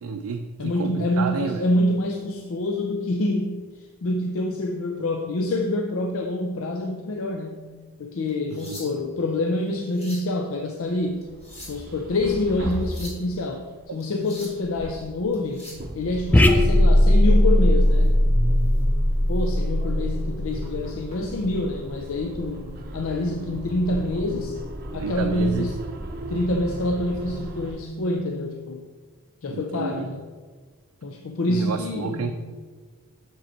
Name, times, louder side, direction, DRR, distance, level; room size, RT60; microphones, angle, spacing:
voice 1, 0.0-1.7 8.6-8.8 13.9-14.0 25.0-25.7 29.5-30.1 31.5-32.3, right 4 dB, 80° right, 5 dB, 0.4 m, -30 dB
voice 2, 0.6-3.6 4.0-7.7 8.0-11.2 11.7-15.6 16.0-18.2 19.3-24.6 24.9-25.7 26.3-28.8 29.4-30.2 31.0-32.3, left 1 dB, 65° left, 4 dB, 0.5 m, -26 dB
sound 1, 8.3-9.2 9.7-10.3 11.2-11.9 12.7-13.2 14.0-14.6 15.3-15.9 17.9-18.1 18.6-18.8 19.3-19.4 20.6-21.2 22.3-22.5, left 1 dB, 30° left, 1.8 m, -44 dB
sound 2, 11.0-13.6 14.4-27.7, right 1 dB, 45° right, 0.7 m, -36 dB
sound 3, 16.3-21.0, left 1 dB, 10° left, 0.4 m, -18 dB
6.8 x 5.1 x 4.3 m, 1.5 s
head